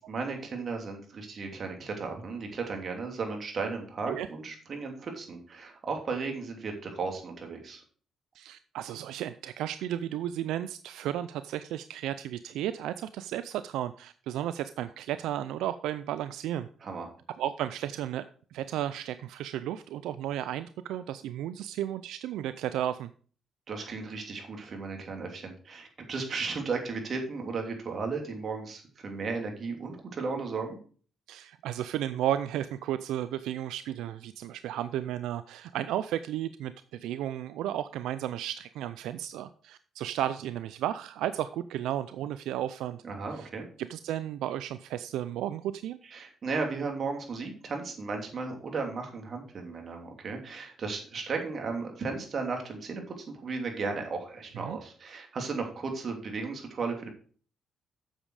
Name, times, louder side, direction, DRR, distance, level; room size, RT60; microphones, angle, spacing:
voice 1, 0.1-7.8 16.8-17.1 23.7-30.8 43.0-43.7 46.1-57.1, right 4 dB, 50° right, 3 dB, 3.0 m, -35 dB
voice 2, 8.3-16.7 17.4-18.2 18.5-23.1 31.3-43.0 43.3-43.5 43.8-46.0 54.6-54.8, right 11 dB, 90° right, 13 dB, 0.4 m, -33 dB
8.8 x 7.3 x 4.8 m, 0.43 s
cardioid pair, 90°, 0 cm